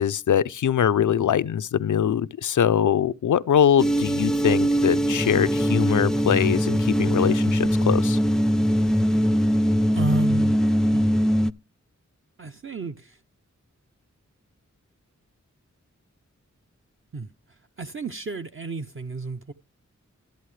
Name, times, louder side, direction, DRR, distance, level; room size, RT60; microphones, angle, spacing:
voice 1, 0.0-8.2, left 9 dB, 80° left, 0.5 m, -22 dB
sound 1, 3.8-11.5, equal, ahead, 0.4 m, -22 dB
voice 2, 9.9-10.6 10.9-11.1 12.4-13.1 17.1-17.3 17.8-19.5, right 3 dB, 45° right, 0.6 m, -31 dB
13.0 x 8.3 x 3.2 m
wide cardioid pair, 55°, 30 cm